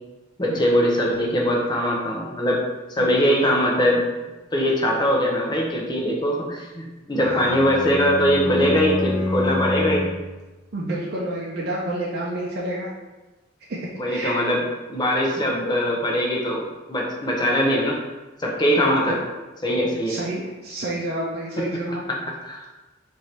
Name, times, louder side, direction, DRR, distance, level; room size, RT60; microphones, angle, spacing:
voice 1, 0.4-2.6 2.9-4.1 4.5-10.1 14.0-14.6 14.9-18.0 18.4-19.2 19.6-20.1 22.4-22.6, equal, 20° left, -2 dB, 0.6 m, -21 dB
Bowed string instrument, 7.1-10.3, left 1 dB, 5° right, 1.2 m, -27 dB
voice 2, 7.2-7.6 10.7-12.9 13.7-13.8 14.1-14.4 18.9-19.0 20.1-22.0, right 1 dB, 55° right, -5 dB, 0.5 m, -29 dB
4.3 x 2.6 x 3.2 m, 1.1 s
head